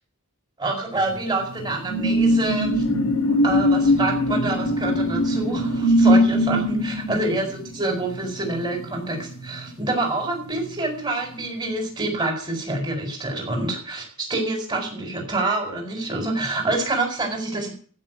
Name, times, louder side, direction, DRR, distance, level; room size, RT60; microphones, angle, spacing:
voice 1, 0.6-2.9 3.3-7.5 7.7-17.7, right 2 dB, 20° right, 3 dB, 4.6 m, -27 dB
sound 1, 1.0-10.0 10.4-10.6, equal, 85° left, 2.9 m, -22 dB
15.0 x 6.4 x 9.2 m, 0.43 s
head